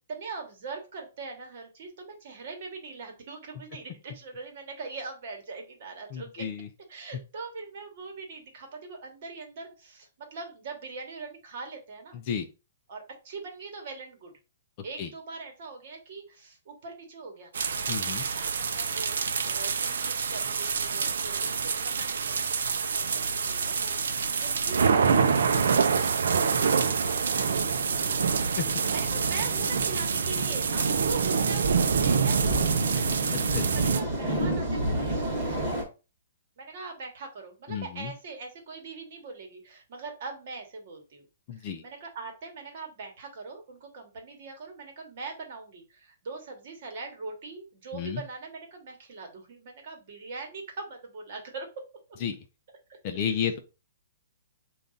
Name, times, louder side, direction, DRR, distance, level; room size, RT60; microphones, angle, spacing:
voice 1, 0.1-6.5 6.9-12.2 12.9-14.3 14.8-17.7 18.2-26.4 26.7-28.1 28.9-35.8 36.6-41.3 41.5-51.8 52.9-53.3, right 4 dB, 40° right, 3 dB, 1.1 m, -42 dB
voice 2, 6.1-6.7 12.3-12.5 15.0-15.1 17.9-18.2 28.6-28.7 33.5-33.7 37.7-38.1 41.5-41.8 47.9-48.2 52.2-52.4 53.0-53.6, left 8 dB, 25° left, 5 dB, 0.4 m, -31 dB
sound 1, 17.5-34.0, right 6 dB, 85° right, 0.5 m, -26 dB
sound 2, 27.4-35.8, right 1 dB, 20° right, 1.2 m, -32 dB
5.2 x 2.3 x 3.8 m, 0.31 s
hypercardioid pair, 175°, 0 cm